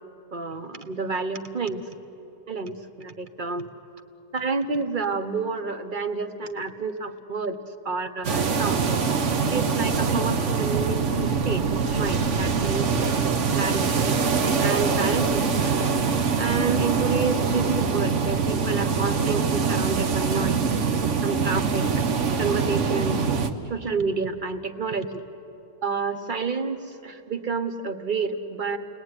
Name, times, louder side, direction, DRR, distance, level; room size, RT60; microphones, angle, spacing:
voice 1, 0.3-1.8 2.5-3.7 4.3-7.6 7.8-8.9 9.5-14.1 14.6-16.0 16.4-20.6 21.2-21.9 22.4-23.2 23.7-25.2 25.8-28.8, right 4 dB, 35° right, 9 dB, 1.2 m, -29 dB
sound 1, 8.2-23.5, right 5 dB, 60° right, 1.4 m, -24 dB
30.0 x 20.5 x 9.8 m, 2.9 s
omnidirectional pair, 1.5 m